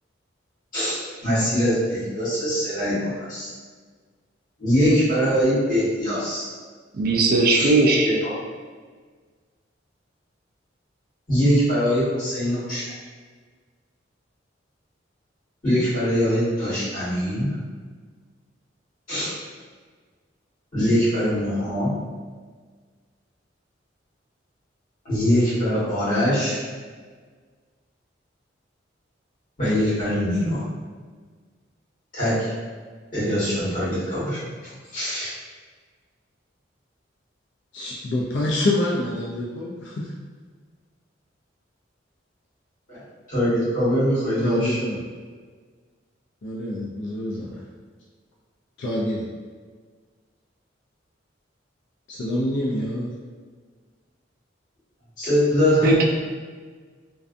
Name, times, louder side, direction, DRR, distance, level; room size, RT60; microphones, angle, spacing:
voice 1, 0.7-3.5 4.6-6.5 7.5-7.7 8.0-8.3 11.3-12.9 15.6-17.5 19.1-19.3 20.7-21.9 25.0-26.6 29.6-30.6 32.1-32.5 33.1-34.4 34.9-35.3 42.9-43.0 43.3-44.7 55.2-55.9, equal, 45° left, -12 dB, 1.4 m, -22 dB
voice 2, 7.0-8.1 55.8-56.1, right 2 dB, 50° right, 0 dB, 0.3 m, -18 dB
voice 3, 37.7-40.1 44.4-45.0 46.4-47.6 48.8-49.2 52.1-53.1, left 1 dB, 65° left, -5 dB, 0.4 m, -26 dB
2.5 x 2.3 x 2.5 m, 1.5 s
head